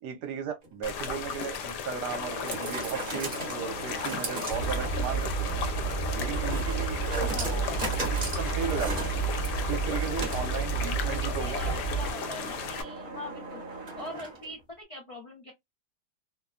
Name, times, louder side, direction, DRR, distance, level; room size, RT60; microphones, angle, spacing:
voice 1, 0.0-5.7 6.1-7.7 8.0-9.1 9.7-11.6, right 8 dB, 75° right, 1.3 m, -36 dB
sound 1, 0.6-14.6, right 2 dB, 35° right, 0.9 m, -38 dB
sound 2, 0.8-12.8, left 7 dB, 80° left, 1.2 m, -36 dB
sound 3, 4.5-12.1, right 4 dB, 20° left, 0.9 m, -31 dB
voice 2, 7.2-7.8 11.2-15.5, left 2 dB, 35° left, 0.5 m, -43 dB
2.9 x 2.2 x 2.3 m
omnidirectional pair, 1.8 m